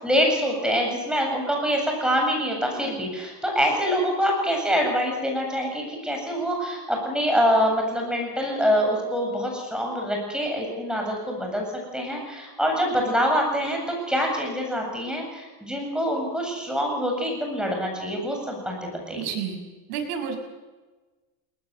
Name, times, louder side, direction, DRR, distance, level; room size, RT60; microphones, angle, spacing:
voice 1, 0.0-11.7 11.9-19.3, equal, ahead, 1 dB, 8.0 m, -25 dB
voice 2, 19.1-19.6 19.9-20.4, right 7 dB, 75° right, 3 dB, 6.3 m, -30 dB
20.5 x 20.5 x 8.1 m, 1.2 s
supercardioid pair, 130°, 48 cm